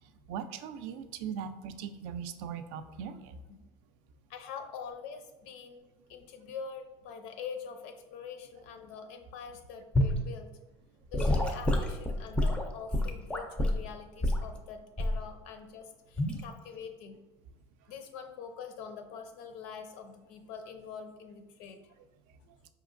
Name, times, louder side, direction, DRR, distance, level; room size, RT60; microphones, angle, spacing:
voice 1, 0.3-3.4, right 7 dB, 70° right, 10 dB, 0.4 m, -39 dB
voice 2, 4.3-10.8 11.1-17.2 17.9-21.8, left 6 dB, 75° left, 7 dB, 0.5 m, -44 dB
Gurgling / Sink (filling or washing) / Liquid, 9.9-10.2 11.1-13.8 14.2-14.5 15.0-15.2 16.2-16.4, left 1 dB, 10° left, 0.4 m, -28 dB
4.9 x 2.9 x 2.5 m, 1.1 s
cardioid pair, 145°, 15 cm